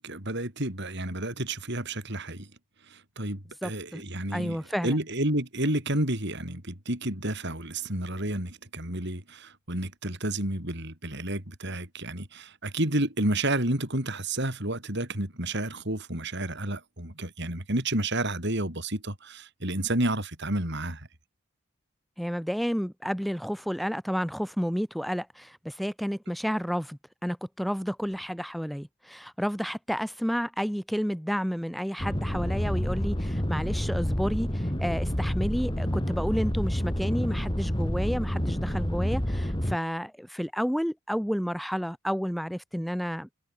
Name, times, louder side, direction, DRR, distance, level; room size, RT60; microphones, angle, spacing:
voice 1, 0.0-2.5 2.9-21.1, right 1 dB, 55° right, 6.3 m, -30 dB
voice 2, 3.6-4.0 4.3-5.0 22.2-43.3, equal, ahead, 3.2 m, -31 dB
sound 1, 32.0-39.8, equal, 20° left, 3.1 m, -28 dB
head